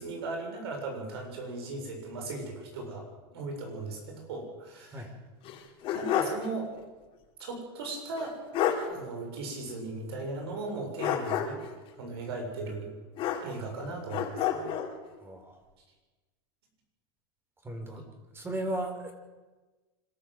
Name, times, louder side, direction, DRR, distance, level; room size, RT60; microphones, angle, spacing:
voice 1, 0.0-3.1 3.3-5.1 5.9-6.7 7.4-8.4 8.8-11.6 11.9-12.9 13.4-14.7, right 3 dB, 90° right, 3 dB, 7.4 m, -37 dB
sound 1, 5.4-6.5 6.8-6.9 8.2-8.3 8.5-8.9 11.0-11.7 13.2-13.8 14.1-14.9, left 9 dB, 45° left, 4.0 m, -29 dB
voice 2, 15.2-15.6 17.6-18.0 18.3-19.1, right 1 dB, 20° right, 5 dB, 4.2 m, -35 dB
25.5 x 13.5 x 7.8 m, 1.2 s
supercardioid pair, 130°, 13 cm